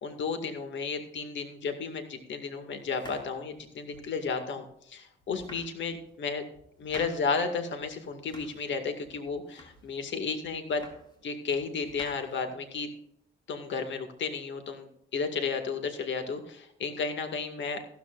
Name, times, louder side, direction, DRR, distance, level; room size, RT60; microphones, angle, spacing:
voice 1, 0.0-6.4 6.8-10.8 11.2-12.9 13.5-17.8, left 5 dB, 70° left, 7 dB, 2.1 m, -33 dB
sound 1, 2.9-4.2 4.7-4.8 5.2-6.2 6.5-7.4 7.8-8.7 9.0-10.1 10.4-11.2 11.5-12.8, equal, 20° left, 3.9 m, -51 dB
15.0 x 13.5 x 2.5 m, 0.74 s
cardioid pair, 90°, 20 cm